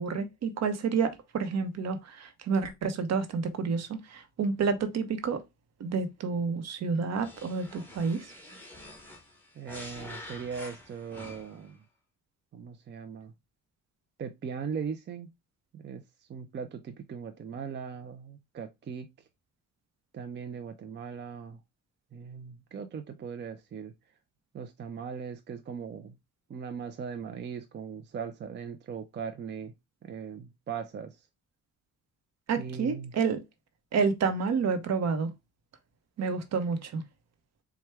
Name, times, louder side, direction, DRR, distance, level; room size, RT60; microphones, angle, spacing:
voice 1, 0.0-5.4 5.8-8.3 32.5-33.4 33.9-35.3 36.2-37.0, right 5 dB, 60° right, 0.9 m, -29 dB
sound 1, 7.1-11.7, left 1 dB, 5° left, 1.4 m, -47 dB
voice 2, 9.6-11.8 12.5-13.3 14.2-15.3 15.7-16.0 16.3-19.1 20.1-21.6 22.1-23.9 24.5-26.2 26.5-29.7 30.0-31.2 32.6-33.1, right 6 dB, 35° right, 0.5 m, -39 dB
4.3 x 2.3 x 3.4 m
cardioid pair, 90°, 30 cm